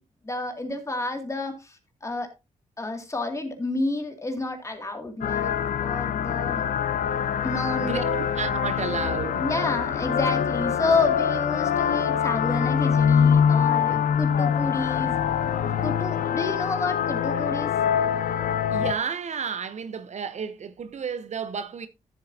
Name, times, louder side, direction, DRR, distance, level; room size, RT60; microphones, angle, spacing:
voice 1, 0.2-2.3 2.8-6.6 7.4-8.0 9.4-15.2 15.6-17.7, left 2 dB, 20° left, 2.3 m, -30 dB
sound 1, 5.2-18.9, left 8 dB, 80° left, 0.7 m, -24 dB
voice 2, 7.8-9.5 18.7-21.9, right 6 dB, 55° right, 0.7 m, -32 dB
14.0 x 7.5 x 2.7 m
wide cardioid pair, 115°, 14 cm